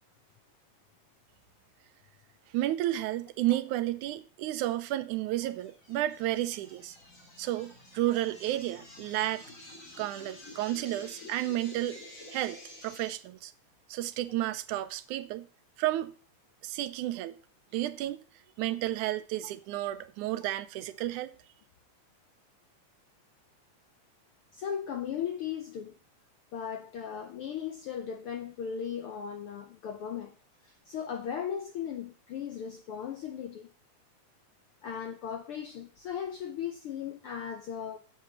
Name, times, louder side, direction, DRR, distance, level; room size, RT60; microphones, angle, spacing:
voice 1, 2.5-7.0 7.4-9.4 10.0-12.0 12.3-13.5 13.9-15.5 15.8-16.1 16.6-17.4 17.7-18.2 18.6-21.3, right 14 dB, 85° right, 2.2 m, -32 dB
sound 1, 5.4-13.1, left 2 dB, 25° left, 2.9 m, -50 dB
voice 2, 24.5-26.0 26.5-30.3 30.6-33.7 34.8-38.0, left 8 dB, 80° left, 1.2 m, -37 dB
8.5 x 7.9 x 7.0 m
omnidirectional pair, 3.5 m